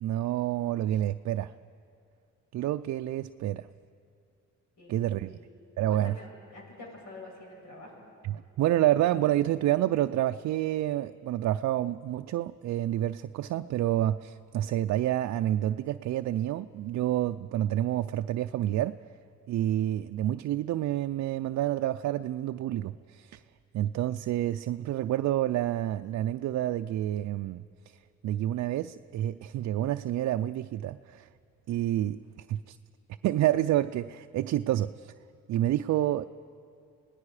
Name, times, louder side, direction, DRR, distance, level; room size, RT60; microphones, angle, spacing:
voice 1, 0.0-1.5 2.5-3.7 4.9-5.4 5.8-6.2 8.3-19.0 19.5-23.4 23.7-27.6 28.2-31.3 31.7-32.2 32.5-32.8 33.2-35.1 35.5-36.2, right 13 dB, 65° right, 8 dB, 0.5 m, -28 dB
voice 2, 4.8-5.4 5.9-8.1, left 2 dB, 75° left, -1 dB, 5.9 m, -47 dB
28.5 x 18.5 x 4.9 m, 2.4 s
cardioid pair, 90°, 30 cm